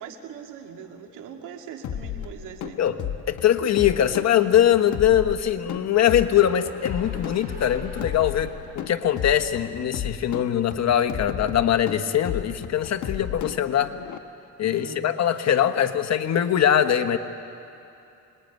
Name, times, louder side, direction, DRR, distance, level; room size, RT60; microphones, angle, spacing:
voice 1, 0.0-3.0 14.6-15.1, right 7 dB, 90° right, 3 dB, 2.4 m, -41 dB
sound 1, 1.8-14.2, left 9 dB, 75° left, 1.2 m, -34 dB
voice 2, 3.3-13.9 14.6-17.2, left 10 dB, 60° left, 8 dB, 1.4 m, -22 dB
sound 2, 5.8-10.0, right 2 dB, 30° right, 6.5 m, -48 dB
27.0 x 20.5 x 9.3 m, 2.7 s
cardioid pair, 90°, 30 cm